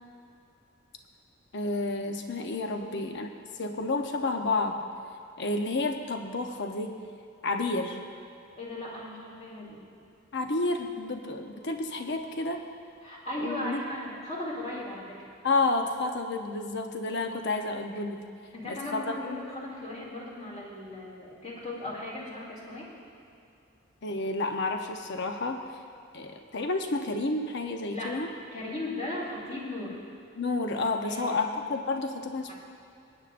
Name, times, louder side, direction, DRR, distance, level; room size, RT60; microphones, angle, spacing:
voice 1, 1.5-4.8 5.4-7.0 7.4-8.1 10.3-12.6 13.4-13.8 15.4-18.2 18.7-19.0 24.0-25.7 26.1-28.3 30.4-32.5, left 2 dB, 60° left, 5 dB, 0.8 m, -30 dB
voice 2, 2.8-3.1 8.6-9.8 13.0-15.3 18.5-22.9 27.9-28.2 28.5-30.0 31.0-31.6 32.5-32.6, left 1 dB, 35° left, -5 dB, 2.5 m, -37 dB
24.0 x 9.0 x 2.6 m, 2.5 s
head